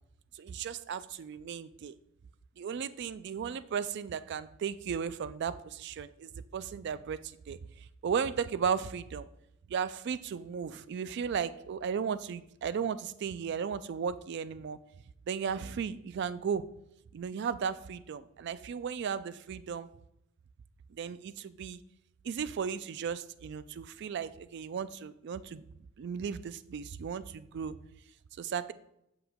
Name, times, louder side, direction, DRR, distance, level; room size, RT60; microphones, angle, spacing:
voice 1, 0.3-1.9 2.6-7.2 7.5-9.3 9.7-14.8 15.3-16.7 17.1-19.9 20.9-21.8 22.2-25.6 26.0-27.8 28.4-28.7, right 7 dB, 55° right, 15 dB, 0.3 m, -35 dB
7.8 x 6.7 x 2.3 m, 0.79 s
head